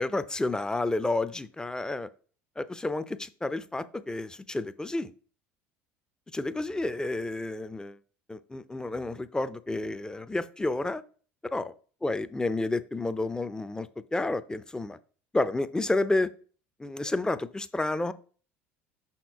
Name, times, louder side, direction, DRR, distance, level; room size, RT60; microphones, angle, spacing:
voice 1, 0.0-2.1 2.6-5.1 6.3-8.0 8.3-11.0 11.5-11.6 12.0-15.0 15.3-16.3 16.8-18.1, left 2 dB, 10° left, 14 dB, 0.5 m, -30 dB
5.8 x 4.3 x 4.6 m, 0.41 s
hypercardioid pair, 80°, 7 cm